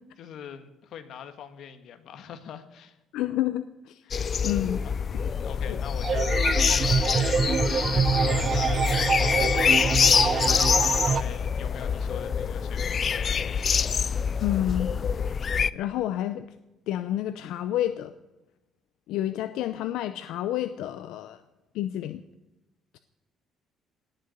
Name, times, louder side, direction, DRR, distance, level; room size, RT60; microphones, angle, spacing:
voice 1, 0.2-3.0 4.0-4.3 4.6-7.1 7.9-13.6 13.9-14.1, left 8 dB, 55° left, 9 dB, 1.6 m, -43 dB
voice 2, 3.1-4.0 4.4-4.8 5.7-5.8 14.4-14.9 15.7-16.5 16.9-18.1 19.1-21.4 21.7-22.2, left 12 dB, 80° left, 10 dB, 0.7 m, -29 dB
sound 1, 4.1-15.7, left 6 dB, 35° left, 0.4 m, -25 dB
sound 2, 6.0-11.2, right 6 dB, 35° right, 0.5 m, -26 dB
18.5 x 6.7 x 9.5 m, 1.0 s
cardioid pair, 150°, 0 cm